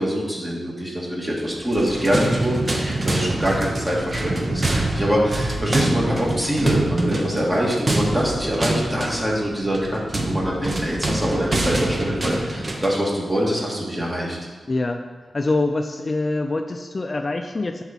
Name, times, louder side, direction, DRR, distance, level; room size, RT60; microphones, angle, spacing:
voice 1, 0.0-14.4, equal, 20° right, -4 dB, 2.4 m, -24 dB
sound 1, 1.6-13.0, right 2 dB, 40° right, 1.0 m, -25 dB
voice 2, 14.7-15.0 15.3-17.8, left 2 dB, 40° left, 5 dB, 0.4 m, -24 dB
10.5 x 4.1 x 4.5 m, 1.4 s
cardioid pair, 65°, 0 cm